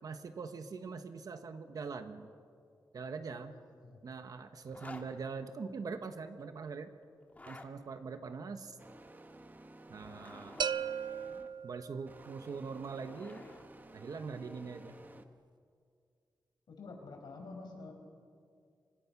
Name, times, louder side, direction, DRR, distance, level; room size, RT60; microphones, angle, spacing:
voice 1, 0.0-2.3 2.9-3.5 4.0-6.9 7.5-8.8 9.9-10.6 11.6-13.4 13.9-14.9, right 5 dB, 55° right, 8 dB, 1.2 m, -42 dB
voice 2, 3.2-4.0 16.7-17.9, left 3 dB, 75° left, 3 dB, 4.9 m, -49 dB
Zipper (clothing), 4.7-5.1 7.2-7.7 9.8-10.7 12.6-13.7, left 2 dB, 20° left, 1.7 m, -51 dB
sound 1, 8.8-11.6 12.1-15.3, right 1 dB, 25° right, 1.2 m, -54 dB
sound 2, 10.6-12.4, right 7 dB, 80° right, 0.6 m, -37 dB
29.0 x 25.5 x 6.0 m, 2.2 s
wide cardioid pair, 180°, 7 cm